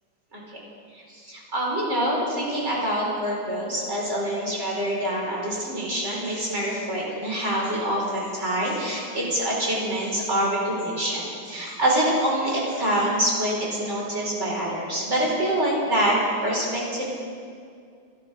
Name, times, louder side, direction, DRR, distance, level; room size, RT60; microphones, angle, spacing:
voice 1, 0.9-17.3, right 1 dB, 35° right, -4 dB, 4.8 m, -26 dB
28.0 x 12.0 x 4.1 m, 2.2 s
omnidirectional pair, 2.2 m